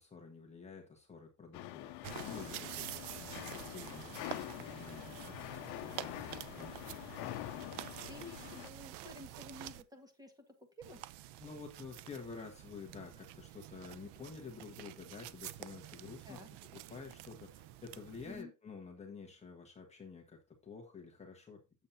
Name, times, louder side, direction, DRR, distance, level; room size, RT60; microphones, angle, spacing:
voice 1, 0.0-6.8 11.4-16.4 16.7-21.9, left 5 dB, 15° left, 0 dB, 1.2 m, -50 dB
sound 1, 1.5-8.7, left 17 dB, 80° left, 0.7 m, -45 dB
sound 2, 2.0-9.8 10.8-18.4, right 14 dB, 85° right, 0.6 m, -48 dB
voice 2, 7.7-11.0 16.2-16.5 18.2-18.5, left 2 dB, 10° right, 5 dB, 1.5 m, -52 dB
8.6 x 7.2 x 2.6 m, 0.27 s
cardioid pair, 160°, 39 cm